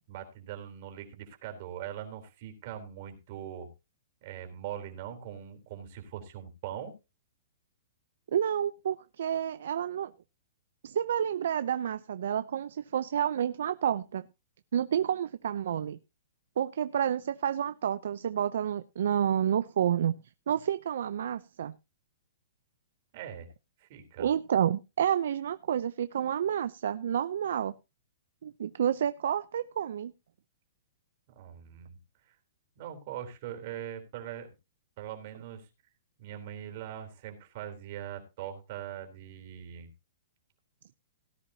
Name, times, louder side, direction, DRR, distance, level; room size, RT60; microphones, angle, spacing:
voice 1, 0.1-3.7 4.2-6.9 23.1-23.5 23.8-24.3 31.3-32.0 32.3-32.4 32.8-34.5 35.0-35.7 36.2-39.9, right 10 dB, 50° right, 5 dB, 3.6 m, -41 dB
voice 2, 8.3-10.1 10.8-14.2 14.7-16.0 16.6-20.1 20.5-21.7 24.2-27.7 28.4-30.1, right 9 dB, 70° right, 13 dB, 0.5 m, -29 dB
17.5 x 10.0 x 2.8 m, 0.27 s
hypercardioid pair, 145°, 0 cm